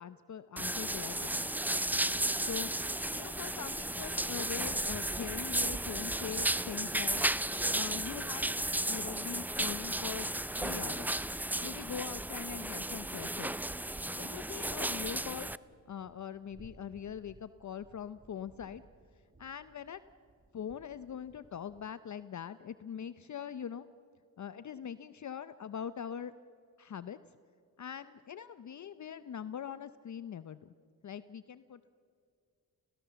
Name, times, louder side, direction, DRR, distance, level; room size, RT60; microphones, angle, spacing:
voice 1, 0.0-1.5 2.4-2.7 3.1-7.2 7.7-8.5 8.9-10.3 10.6-11.2 11.6-13.6 14.2-15.5 15.9-18.8 19.4-20.0 20.5-23.9 24.4-26.3 26.8-27.2 27.8-30.7 31.0-31.9, left 8 dB, 45° left, 14 dB, 0.7 m, -42 dB
sound 1, 0.6-15.6, right 1 dB, 5° right, 0.5 m, -34 dB
Thunder, 4.5-21.9, right 3 dB, 20° right, 1.4 m, -55 dB
30.0 x 19.0 x 7.0 m, 2.4 s
cardioid pair, 60°, 39 cm